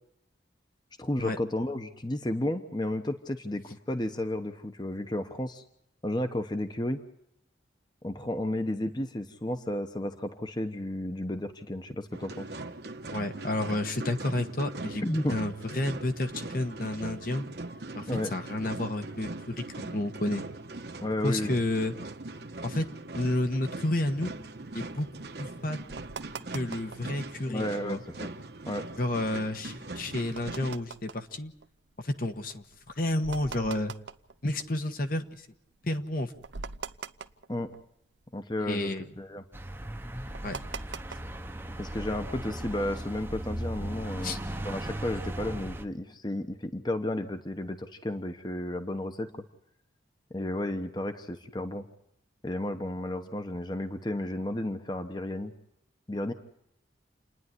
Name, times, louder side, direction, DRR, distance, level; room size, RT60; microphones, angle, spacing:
voice 1, 1.0-5.6 6.0-7.0 8.0-12.4 15.0-15.3 18.1-18.3 21.0-21.6 27.5-28.3 28.7-28.8 37.5-37.7 38.3-38.9 39.2-39.4 41.8-44.4 44.6-49.3 50.3-51.9 52.4-55.5 56.1-56.3, left 1 dB, 25° left, 7 dB, 1.0 m, -32 dB
sound 1, 12.1-30.8, right 2 dB, 60° right, 1.2 m, -41 dB
voice 2, 13.0-15.0 15.3-17.5 17.9-20.4 21.2-21.9 22.6-22.9 23.1-24.4 24.7-25.1 25.4-25.8 26.5-28.0 29.0-31.5 32.0-32.6 33.0-33.9 34.4-35.2 35.8-36.3 38.6-39.1 40.4-40.6 44.2-44.4, left 1 dB, 50° left, 7 dB, 1.2 m, -30 dB
sound 2, 23.9-27.2 27.6-28.2 28.6-35.3 35.7-35.8 36.1-38.2 38.5-41.5, right 4 dB, 75° right, 0.8 m, -43 dB
sound 3, 39.5-45.8, right 1 dB, 10° right, 0.9 m, -37 dB
28.5 x 10.5 x 9.6 m, 0.79 s
head